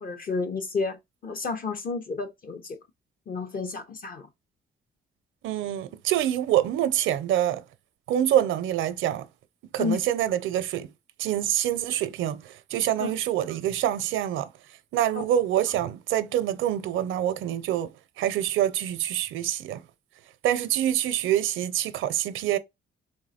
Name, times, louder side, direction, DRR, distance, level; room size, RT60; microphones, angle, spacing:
voice 1, 0.0-2.8 3.3-4.3 9.8-10.0 13.0-13.1, left 4 dB, 45° left, 0.7 m, -31 dB
voice 2, 5.4-7.6 8.1-9.3 9.7-10.9 11.2-14.5 14.9-19.8 20.4-22.6, right 11 dB, 80° right, 0.6 m, -26 dB
3.7 x 3.0 x 4.1 m
cardioid pair, 90°, 20 cm